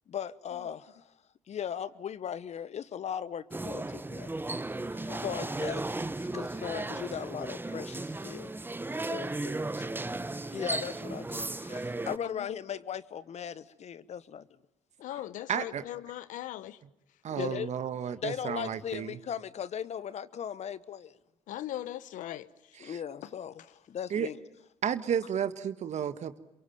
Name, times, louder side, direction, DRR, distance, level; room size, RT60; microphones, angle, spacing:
voice 1, 0.1-1.0 1.5-4.3 4.9-8.5 9.1-9.3 10.5-14.5 17.3-17.7 18.2-21.1 22.8-24.4, left 8 dB, 60° left, 1.1 m, -38 dB
sound 1, 3.5-12.2, right 2 dB, 15° right, 1.2 m, -35 dB
voice 2, 5.1-5.4 9.4-10.0 12.2-12.5 15.0-16.8 17.4-17.6 21.5-22.5, left 13 dB, 80° left, 1.0 m, -40 dB
voice 3, 15.5-15.8 17.2-19.2 22.8-23.0 24.1-24.3 24.8-26.4, right 8 dB, 60° right, 1.6 m, -32 dB
27.0 x 23.5 x 9.1 m
supercardioid pair, 60°, 13 cm